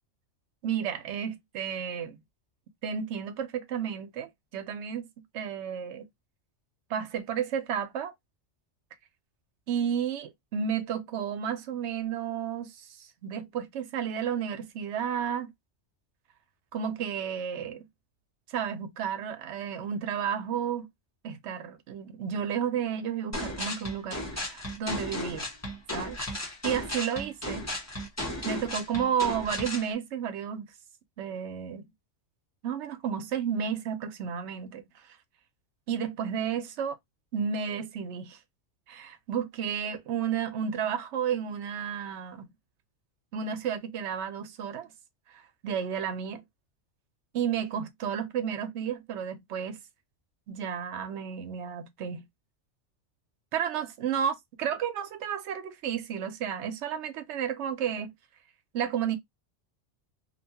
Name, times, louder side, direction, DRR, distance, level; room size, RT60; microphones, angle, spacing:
voice 1, 0.6-2.2 2.8-5.1 5.3-6.1 6.9-8.1 9.7-15.5 16.7-17.9 18.5-20.9 21.2-25.4 25.9-26.2 26.6-27.7 28.4-30.7 31.2-31.9 32.6-34.8 35.9-37.0 37.3-38.4 38.9-42.5 43.3-44.9 45.3-46.4 47.3-49.8 50.5-52.3 53.5-58.1 58.7-59.2, right 8 dB, 70° right, 0.9 m, -32 dB
sound 1, 23.3-29.9, left 1 dB, 15° left, 0.8 m, -35 dB
2.7 x 2.2 x 2.7 m
omnidirectional pair, 1.3 m